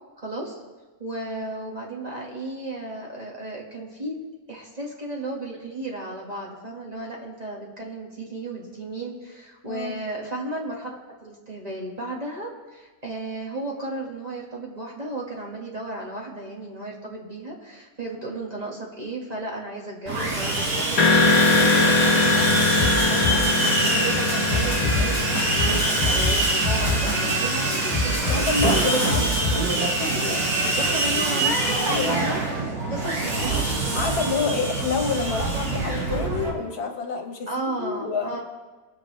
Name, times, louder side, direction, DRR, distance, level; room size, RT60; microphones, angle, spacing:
voice 1, 0.2-0.6 1.0-4.1 4.5-21.0 21.3-29.9 30.6-34.2 37.5-38.4, right 2 dB, 25° right, -3 dB, 1.9 m, -34 dB
voice 2, 9.7-10.0 28.3-29.3 30.1-30.4 31.4-31.5 31.9-32.2 33.9-38.4, left 5 dB, 85° left, 2 dB, 1.8 m, -28 dB
Sawing, 20.1-36.5, right 2 dB, 85° right, 2.3 m, -24 dB
sound 1, 21.0-28.8, left 3 dB, 70° left, 1.9 m, -23 dB
sound 2, 22.8-24.0 24.3-27.4 27.7-29.6, left 1 dB, 15° left, 2.1 m, -27 dB
21.0 x 7.5 x 3.3 m, 1.3 s
omnidirectional pair, 1.6 m